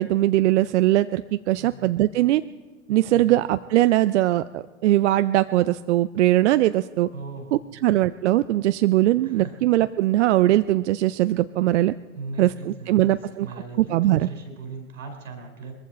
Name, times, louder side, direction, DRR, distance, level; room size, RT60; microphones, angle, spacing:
voice 1, 0.0-2.4 2.9-7.1 7.5-11.9 12.4-13.5 13.8-14.3, right 15 dB, 60° right, 13 dB, 0.6 m, -21 dB
voice 2, 1.6-1.9 3.1-3.3 7.1-7.8 9.2-9.6 12.1-15.7, right 3 dB, 80° right, 4 dB, 4.3 m, -38 dB
21.5 x 15.0 x 4.3 m, 1.3 s
hypercardioid pair, 100°, 39 cm